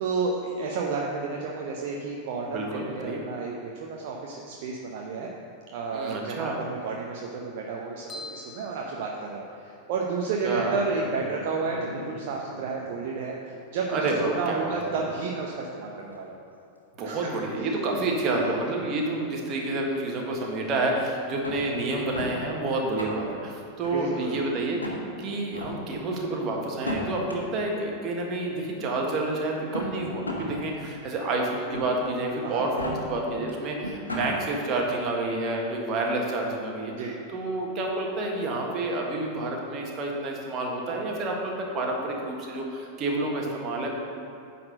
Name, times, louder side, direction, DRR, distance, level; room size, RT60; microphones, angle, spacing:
voice 1, 0.0-5.3 5.7-16.4 17.0-17.3 17.5-17.7 17.9-18.0 18.4-18.7 23.9-24.5 32.4-32.6 37.0-37.1, right 4 dB, 50° right, -1 dB, 0.8 m, -32 dB
voice 2, 2.5-3.2 5.9-6.6 10.4-10.8 13.9-14.8 17.0-36.9 37.3-43.9, right 2 dB, 35° right, 0 dB, 1.6 m, -29 dB
sound 1, 8.1-9.9, left 2 dB, 15° left, 1.4 m, -44 dB
Dog, 10.5-13.2 13.5-13.6 14.7-15.3 17.4-17.5, equal, 90° right, 0.8 m, -40 dB
sound 2, 21.4-22.3 22.8-23.4 23.8-24.4 24.8-25.0 25.5-25.7 26.7-27.3 28.4-28.5 29.5-30.5 30.9-31.0 31.7-32.1 32.6-32.9 33.5-33.6 33.8-34.3, left 1 dB, 80° left, 1.3 m, -34 dB
9.6 x 4.2 x 6.5 m, 2.7 s
figure-of-eight pair, 90°, 0 cm